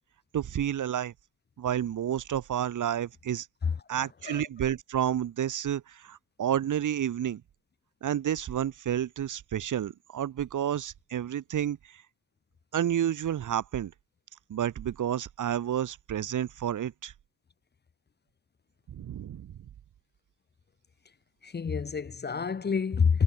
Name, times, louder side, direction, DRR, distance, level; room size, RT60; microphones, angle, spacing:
voice 1, 0.3-1.1 1.6-3.5 3.9-7.4 8.0-12.0 12.7-13.9 14.5-17.1 18.9-19.5, right 10 dB, 60° right, 1.0 m, -30 dB
voice 2, 3.6-4.4 21.4-23.2, left 6 dB, 30° left, 0.8 m, -28 dB
cardioid pair, 100°, 35 cm